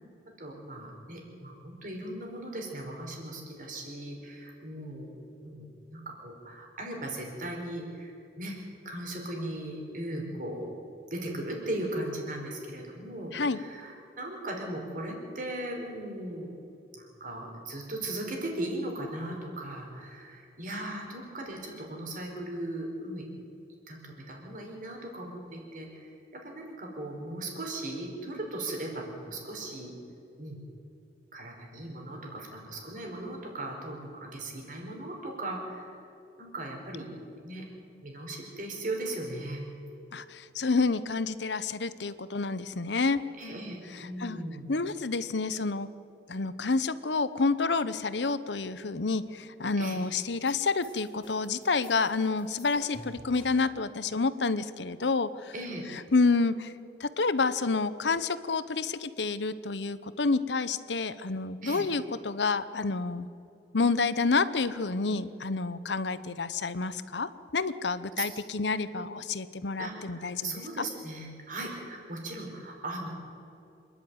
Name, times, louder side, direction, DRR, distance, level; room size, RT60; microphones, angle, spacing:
voice 1, 0.4-5.1 5.4-8.6 8.8-10.7 11.1-16.5 16.9-23.3 23.9-29.9 30.4-30.6 31.3-35.9 36.4-37.1 37.4-37.6 38.0-39.6 43.4-44.7 49.8-50.0 55.5-55.9 61.6-61.8 68.2-68.4 68.9-69.1 69.8-73.1, right 1 dB, 50° right, 1 dB, 4.6 m, -38 dB
voice 2, 40.1-43.2 44.2-44.4 44.7-45.9 46.3-55.5 56.1-56.7 57.0-63.3 63.7-70.8, left 4 dB, 80° left, 14 dB, 0.9 m, -29 dB
sound 1, 50.5-53.8, equal, 25° left, 4.0 m, -50 dB
26.5 x 11.0 x 9.5 m, 2.8 s
head